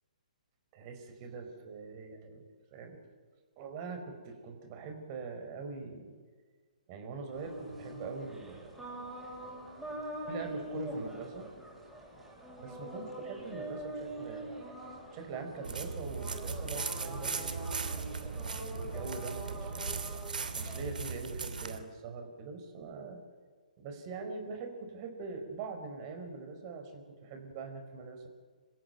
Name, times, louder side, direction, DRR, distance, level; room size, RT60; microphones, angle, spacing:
voice 1, 0.7-3.0 3.6-6.2 6.9-8.9 10.3-11.5 12.6-14.5 15.1-17.9 18.7-20.0 20.5-23.2 23.8-28.3, right 4 dB, 35° right, 6 dB, 4.8 m, -43 dB
sound 1, 7.3-20.9, right 1 dB, 5° right, 7.8 m, -44 dB
sound 2, 15.6-21.8, right 4 dB, 75° right, 2.7 m, -38 dB
27.0 x 15.5 x 9.4 m, 1.5 s
hypercardioid pair, 135°, 5 cm